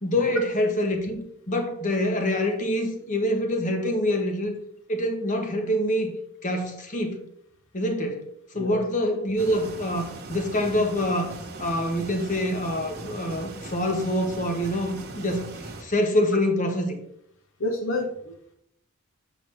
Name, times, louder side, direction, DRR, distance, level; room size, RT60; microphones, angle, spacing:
voice 1, 0.0-4.5 4.9-6.1 6.4-7.2 7.7-8.2 8.5-11.3 11.6-17.0, left 1 dB, 35° left, 5 dB, 1.0 m, -26 dB
sound 1, 9.4-15.8, right 2 dB, 50° right, 1.1 m, -39 dB
voice 2, 17.6-18.5, left 2 dB, 65° left, 3 dB, 0.8 m, -29 dB
7.0 x 5.2 x 3.3 m, 0.72 s
head